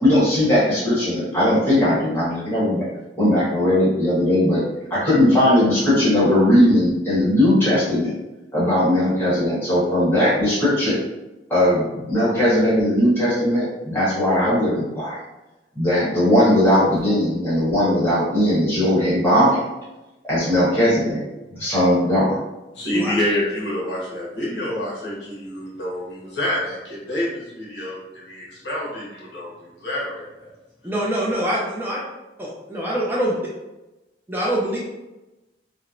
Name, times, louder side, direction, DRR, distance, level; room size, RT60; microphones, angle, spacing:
voice 1, 0.0-2.8 3.2-4.6 4.9-8.1 8.5-11.0 11.5-15.2 15.7-19.6 20.3-21.2 21.5-22.4, left 1 dB, 15° left, -10 dB, 1.2 m, -18 dB
voice 2, 22.7-30.5, left 1 dB, 80° left, -5 dB, 1.0 m, -27 dB
voice 3, 30.8-32.0 32.7-33.4 34.3-34.8, right 1 dB, 10° right, -6 dB, 0.3 m, -23 dB
2.9 x 2.1 x 2.4 m, 1.0 s
head